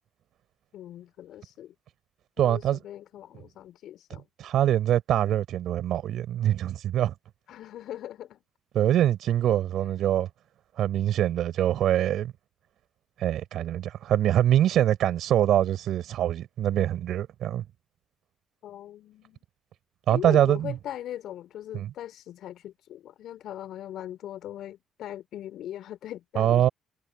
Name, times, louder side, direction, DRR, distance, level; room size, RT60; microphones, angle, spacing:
voice 1, 0.7-1.7 2.4-4.2 7.5-8.4 18.6-19.4 20.1-26.7, left 12 dB, 65° left, 5.2 m, -40 dB
voice 2, 2.4-2.8 4.4-7.1 8.7-10.3 10.8-12.3 13.2-17.6 20.1-20.7 21.7-21.9 26.3-26.7, right 11 dB, 65° right, 6.1 m, -24 dB
hypercardioid pair, 50°, 0 cm